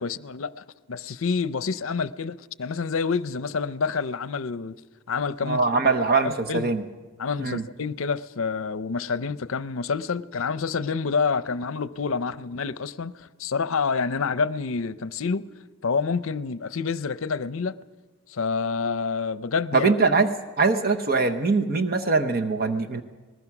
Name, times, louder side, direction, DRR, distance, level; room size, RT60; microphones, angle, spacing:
voice 1, 0.0-4.8 5.1-5.6 6.2-6.7 7.2-15.4 15.8-17.8 18.3-19.9, left 5 dB, 70° left, 0.6 m, -28 dB
voice 2, 5.4-6.8 7.4-7.6 19.7-23.0, right 4 dB, 45° right, 1.0 m, -22 dB
25.5 x 20.0 x 6.0 m
head